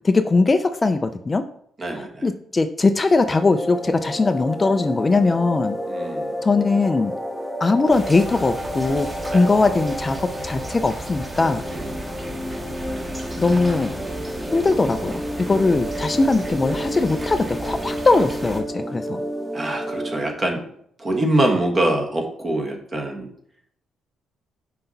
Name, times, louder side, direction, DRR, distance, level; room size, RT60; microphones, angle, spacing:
voice 1, 0.0-1.4 1.9-5.8 6.4-7.1 7.6-10.2 10.4-11.6 13.4-14.0 14.5-19.2, left 3 dB, 25° left, 8 dB, 0.4 m, -20 dB
voice 2, 1.8-2.3 5.9-6.4 9.2-9.4 11.7-11.9 19.5-20.6 21.0-23.3, right 1 dB, 35° right, 2 dB, 1.5 m, -24 dB
sound 1, 3.2-20.3, equal, ahead, 0.8 m, -31 dB
sound 2, 7.9-18.6, right 1 dB, 15° right, 1.4 m, -35 dB
5.7 x 5.5 x 4.0 m, 0.67 s
cardioid pair, 90°, 0 cm